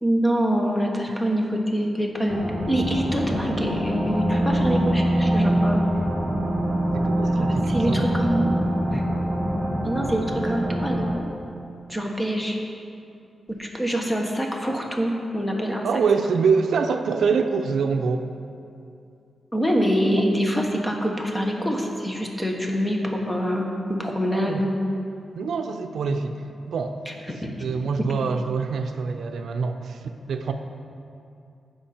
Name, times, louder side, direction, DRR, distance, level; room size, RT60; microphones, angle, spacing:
voice 1, 0.0-2.4 2.7-5.8 7.3-8.5 8.9-9.0 9.8-11.1 11.9-12.6 13.6-15.9 19.5-24.8 27.1-27.5, equal, 10° left, 1 dB, 1.2 m, -25 dB
sound 1, 2.3-11.2, right 1 dB, 40° right, 1.9 m, -24 dB
voice 2, 6.9-8.1 15.8-18.2 24.3-24.7 25.3-26.4 26.7-27.0 27.6-30.5, right 5 dB, 85° right, 6 dB, 0.5 m, -25 dB
14.5 x 5.2 x 4.4 m, 2.5 s
wide cardioid pair, 110°, 0 cm